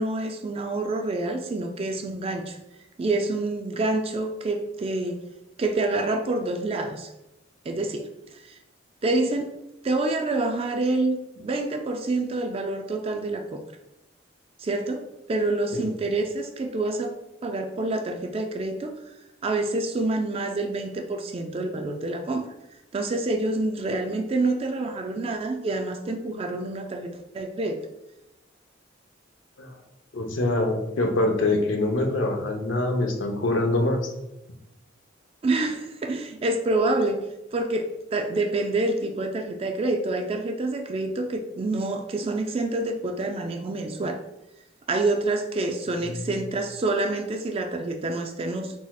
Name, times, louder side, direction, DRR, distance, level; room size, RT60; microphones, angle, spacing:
voice 1, 0.0-2.6 3.0-5.2 5.6-7.1 7.7-8.6 9.0-9.5 9.8-13.6 14.6-15.0 15.3-17.1 17.4-19.1 19.4-22.5 22.9-27.8 35.4-37.2 37.5-44.2 44.9-48.7, right 2 dB, 30° right, 5 dB, 0.3 m, -27 dB
voice 2, 30.1-34.1 46.1-46.2, left 2 dB, 75° left, 3 dB, 0.7 m, -24 dB
4.6 x 4.0 x 2.3 m, 0.90 s
head